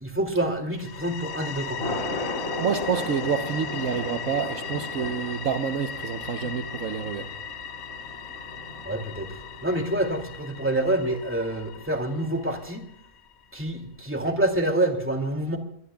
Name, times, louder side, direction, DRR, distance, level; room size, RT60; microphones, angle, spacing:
voice 1, 0.0-1.8 8.8-12.8 13.5-15.6, right 1 dB, 10° right, 2.4 m, -27 dB
sound 1, 0.7-13.4, left 7 dB, 80° left, 1.2 m, -38 dB
Thunder, 1.0-12.3, left 1 dB, 60° left, 3.3 m, -37 dB
voice 2, 2.6-7.3, right 7 dB, 65° right, 1.3 m, -28 dB
25.0 x 20.0 x 2.3 m
omnidirectional pair, 1.5 m